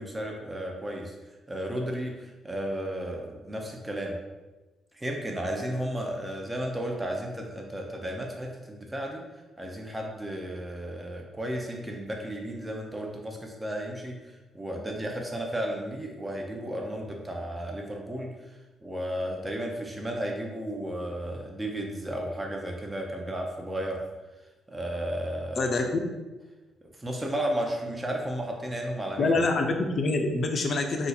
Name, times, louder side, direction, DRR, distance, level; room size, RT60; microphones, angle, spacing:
voice 1, 0.0-4.2 4.9-9.2 9.6-18.5 18.8-24.0 24.7-25.7 26.8-29.4, right 1 dB, 15° right, 1 dB, 0.6 m, -33 dB
voice 2, 29.2-31.1, left 3 dB, 50° left, 4 dB, 0.5 m, -25 dB
2.7 x 2.4 x 4.0 m, 1.2 s
cardioid pair, 90°, 0 cm